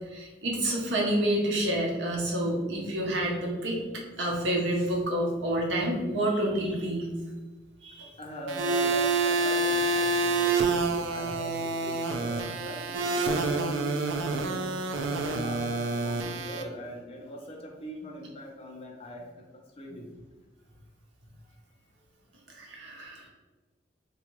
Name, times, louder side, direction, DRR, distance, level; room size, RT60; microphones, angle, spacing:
voice 1, 0.1-3.8 4.2-7.1 7.8-8.1 22.5-23.3, right 1 dB, 70° right, -1 dB, 0.8 m, -28 dB
voice 2, 8.2-14.1 14.3-14.7 15.2-20.1, equal, 30° left, -1 dB, 0.5 m, -41 dB
sound 1, 8.5-16.6, right 3 dB, 90° right, 0.4 m, -28 dB
3.7 x 2.3 x 3.0 m, 1.3 s
head